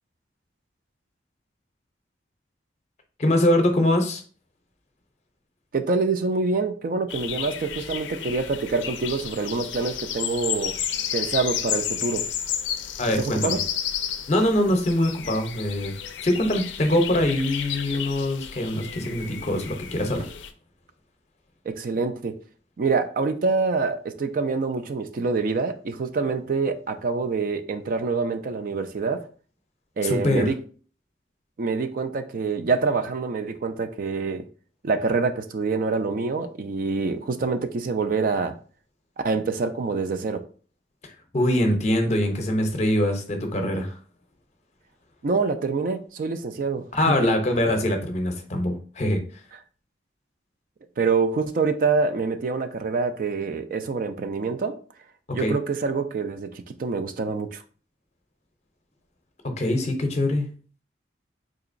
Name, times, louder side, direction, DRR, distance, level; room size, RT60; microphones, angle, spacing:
voice 1, 3.2-4.2 13.0-13.6 14.3-15.9 16.2-20.3 30.0-30.5 41.3-44.0 46.9-49.2 55.3-55.6 59.4-60.5, left 1 dB, 40° left, 0.6 m, -23 dB
voice 2, 5.7-10.8 11.1-12.3 13.2-13.6 21.7-22.4 22.8-29.3 30.0-30.6 31.6-34.5 34.8-38.6 39.2-40.5 45.2-47.3 51.0-54.8 55.3-57.6, right 4 dB, 50° right, 0.3 m, -26 dB
sound 1, 7.1-20.5, left 9 dB, 85° left, 0.4 m, -32 dB
3.8 x 2.9 x 2.5 m
head